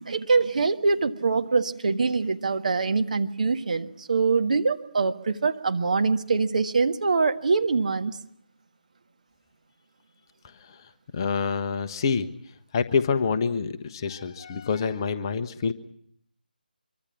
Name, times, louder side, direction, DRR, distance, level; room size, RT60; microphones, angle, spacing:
voice 1, 0.0-8.2, right 4 dB, 50° right, 7 dB, 1.6 m, -24 dB
voice 2, 11.1-12.3 12.7-15.7, left 5 dB, 25° left, 9 dB, 1.2 m, -26 dB
25.0 x 24.0 x 5.9 m, 0.69 s
figure-of-eight pair, 155°, 5 cm